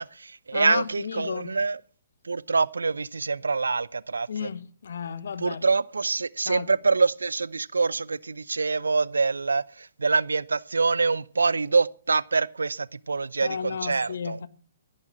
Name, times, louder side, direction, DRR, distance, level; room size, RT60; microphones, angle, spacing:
voice 1, 0.0-1.8 2.2-4.5 5.4-14.4, right 4 dB, 70° right, 0.7 m, -25 dB
voice 2, 0.5-1.6 4.3-5.6 6.5-6.7 13.4-14.5, left 7 dB, 60° left, 1.3 m, -33 dB
13.5 x 11.0 x 7.2 m
figure-of-eight pair, 125°, 0 cm